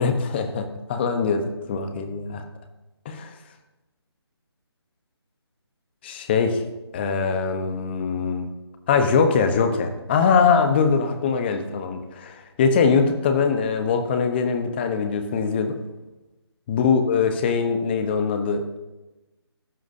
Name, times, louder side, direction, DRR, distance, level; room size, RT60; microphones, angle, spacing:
voice 1, 0.0-2.4 3.0-3.3 6.0-6.6 6.9-8.5 8.9-15.8 16.7-18.6, left 5 dB, 25° left, 7 dB, 1.0 m, -22 dB
18.5 x 7.6 x 2.7 m, 1.1 s
figure-of-eight pair, 155°, 14 cm